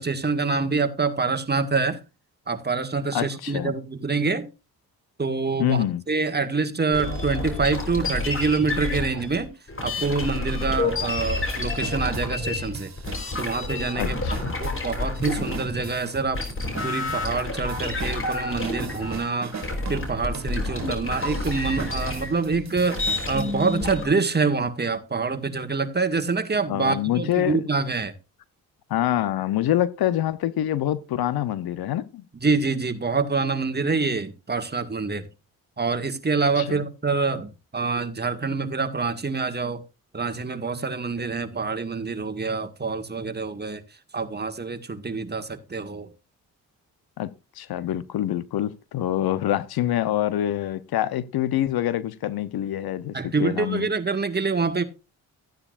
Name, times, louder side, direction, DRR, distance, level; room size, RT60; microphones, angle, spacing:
voice 1, 0.0-2.0 2.5-4.5 5.2-9.5 9.8-12.9 13.4-16.4 16.8-19.5 19.9-28.1 32.4-35.2 35.8-39.8 40.1-43.8 44.1-46.1 53.1-54.8, right 4 dB, 25° right, 1.8 m, -26 dB
voice 2, 3.1-3.8 5.6-6.0 14.0-14.6 26.7-27.6 28.9-32.2 36.6-36.8 47.2-53.9, left 12 dB, 70° left, 0.9 m, -26 dB
sound 1, 6.9-16.0 16.3-24.1, left 3 dB, 35° left, 4.0 m, -29 dB
sound 2, 8.7-8.8 9.3-9.4 10.0-23.5, right 6 dB, 45° right, 2.3 m, -40 dB
14.5 x 9.8 x 2.5 m
supercardioid pair, 55°, 38 cm